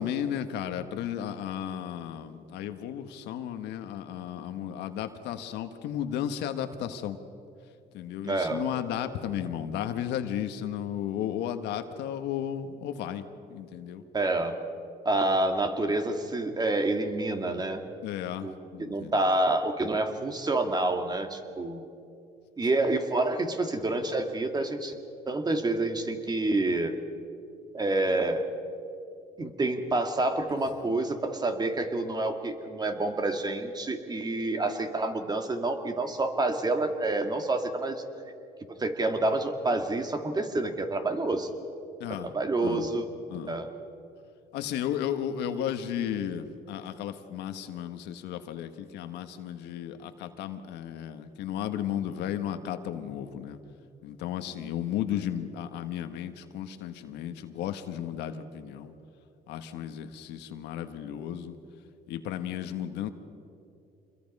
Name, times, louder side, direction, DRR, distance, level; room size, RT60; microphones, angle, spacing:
voice 1, 0.0-7.2 7.9-13.2 13.5-14.0 18.0-19.2 30.5-30.6 42.0-42.3 42.6-42.9 43.3-43.6 44.5-53.6 54.0-58.9 59.5-61.5 62.1-63.1, left 10 dB, 85° left, 8 dB, 1.4 m, -34 dB
voice 2, 8.2-8.6 14.1-14.6 15.1-17.8 18.4-21.9 22.6-25.0 25.3-26.9 27.7-28.5 29.4-38.0 38.8-41.5 42.1-43.1 43.5-43.7, right 2 dB, 25° right, 6 dB, 1.9 m, -28 dB
27.0 x 22.0 x 5.4 m, 2.6 s
cardioid pair, 110°, 17 cm